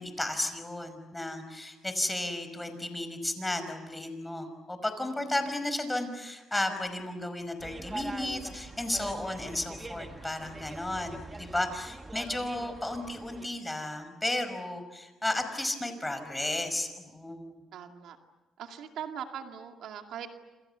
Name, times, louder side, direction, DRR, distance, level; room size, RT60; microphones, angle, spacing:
voice 1, 0.0-17.5, left 1 dB, 10° left, 8 dB, 5.4 m, -33 dB
sound 1, 7.6-13.5, right 2 dB, 25° right, 2.0 m, -43 dB
voice 2, 17.7-18.2 18.6-20.3, right 8 dB, 80° right, 4 dB, 2.3 m, -41 dB
28.5 x 27.0 x 6.9 m, 1.1 s
cardioid pair, 90°, 0 cm